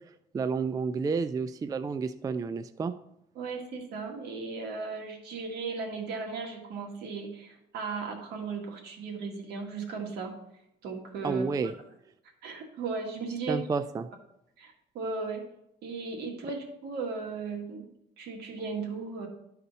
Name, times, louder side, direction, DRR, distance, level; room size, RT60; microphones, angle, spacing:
voice 1, 0.3-2.9 11.2-11.7 13.5-14.1, right 5 dB, 20° right, 11 dB, 0.3 m, -30 dB
voice 2, 3.4-10.3 10.8-11.7 12.4-13.6 14.6-15.4 15.8-17.8 18.2-19.3, right 4 dB, 75° right, 2 dB, 1.8 m, -36 dB
12.0 x 4.1 x 4.2 m, 0.81 s
cardioid pair, 110°, 17 cm